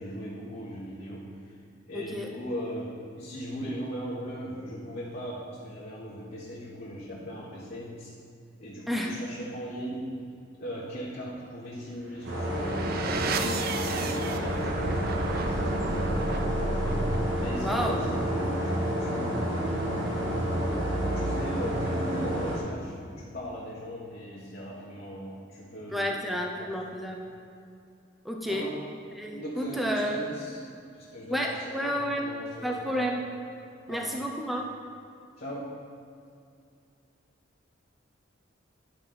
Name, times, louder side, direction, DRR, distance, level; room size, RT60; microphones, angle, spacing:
voice 1, 0.0-1.6 1.9-8.1 8.6-10.2 10.6-16.9 17.4-19.5 21.1-26.2 26.6-26.7 28.4-28.8 29.3-30.7 30.9-33.1 33.9-34.1 35.4-35.7, equal, 50° left, -7 dB, 1.2 m, -39 dB
voice 2, 1.9-2.3 8.9-9.1 17.6-18.0 25.9-27.2 28.2-28.7 29.2-30.2 31.3-32.3 32.6-33.3 33.9-34.7, equal, ahead, 0 dB, 0.5 m, -31 dB
sound 1, 12.2-22.9, right 3 dB, 50° right, 0.5 m, -34 dB
sound 2, 12.2-22.6, equal, 80° right, 1.3 m, -30 dB
10.5 x 4.0 x 5.5 m, 2.4 s
head